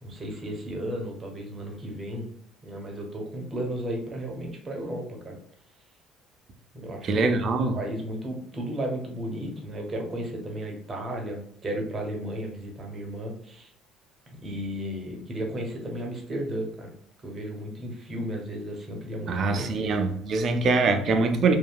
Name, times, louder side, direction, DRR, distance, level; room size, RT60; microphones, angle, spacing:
voice 1, 0.0-2.3 2.6-5.4 6.7-13.7 14.3-16.9 17.2-19.9, right 1 dB, 30° right, 1 dB, 0.9 m, -34 dB
voice 2, 7.0-7.8 19.3-21.5, right 3 dB, 45° right, 6 dB, 0.5 m, -23 dB
2.8 x 2.5 x 2.2 m, 0.68 s
cardioid pair, 110°, 0 cm